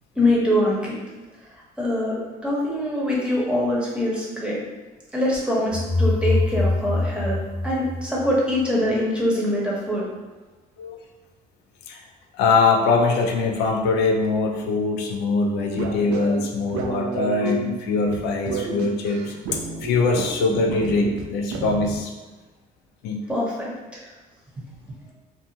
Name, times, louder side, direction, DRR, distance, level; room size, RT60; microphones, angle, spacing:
voice 1, 0.2-1.0 1.8-2.2 2.4-4.6 5.1-7.4 7.6-10.1 23.3-24.1 24.6-24.7, left 1 dB, 5° right, -5 dB, 0.8 m, -23 dB
sound 1, 5.7-8.6, left 2 dB, 35° right, 0.6 m, -24 dB
voice 2, 12.3-22.1 23.0-23.2, left 3 dB, 85° left, 2 dB, 0.4 m, -22 dB
sound 2, 15.8-22.0, right 3 dB, 80° right, 0.4 m, -31 dB
2.5 x 2.3 x 2.7 m, 1.3 s
cardioid pair, 110°, 17 cm